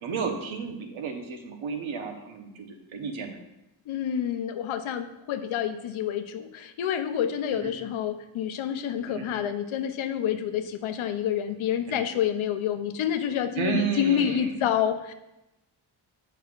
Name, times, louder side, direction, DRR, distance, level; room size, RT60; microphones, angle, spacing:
voice 1, 0.0-2.7 2.9-3.4 7.5-7.7 9.0-9.3 11.8-12.0 13.6-14.6, right 5 dB, 80° right, 4 dB, 1.1 m, -32 dB
voice 2, 3.9-15.1, left 9 dB, 85° left, 9 dB, 0.7 m, -28 dB
9.4 x 5.7 x 2.4 m, 0.93 s
wide cardioid pair, 165°, 47 cm